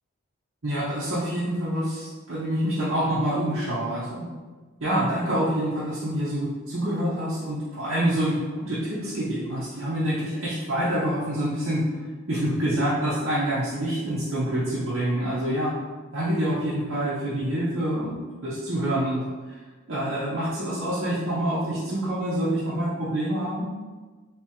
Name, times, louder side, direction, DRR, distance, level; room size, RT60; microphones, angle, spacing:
voice 1, 0.6-4.3 4.8-11.8 12.3-15.7 16.1-19.6 19.9-23.7, right 1 dB, 70° right, -10 dB, 0.8 m, -26 dB
3.5 x 3.4 x 2.9 m, 1.3 s
head